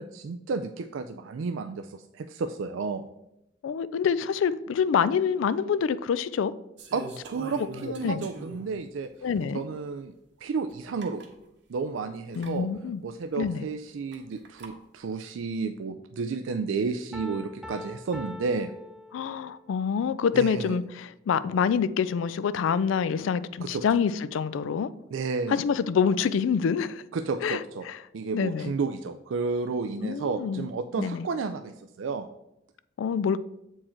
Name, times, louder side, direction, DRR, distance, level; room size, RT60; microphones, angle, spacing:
voice 1, 0.0-3.0 6.9-9.1 9.5-10.1 10.4-11.2 11.7-12.7 13.0-18.7 20.3-20.8 23.6-23.8 25.1-25.5 27.1-27.8 28.1-32.3, right 4 dB, 80° right, 0.4 m, -32 dB
voice 2, 3.6-6.5 8.0-8.3 9.2-9.6 12.4-13.0 13.4-13.6 19.1-24.9 25.5-27.0 27.4-28.0 28.3-28.7 30.0-30.7 31.0-31.3 33.0-33.4, left 6 dB, 80° left, 0.3 m, -26 dB
sound 1, 6.8-8.8 9.4-9.5 10.7-10.8 11.0-11.3 12.3-12.5 14.1-14.7, right 2 dB, 65° right, 1.2 m, -43 dB
Piano, 17.1-19.7, left 1 dB, 5° right, 0.6 m, -43 dB
7.5 x 4.6 x 4.3 m
head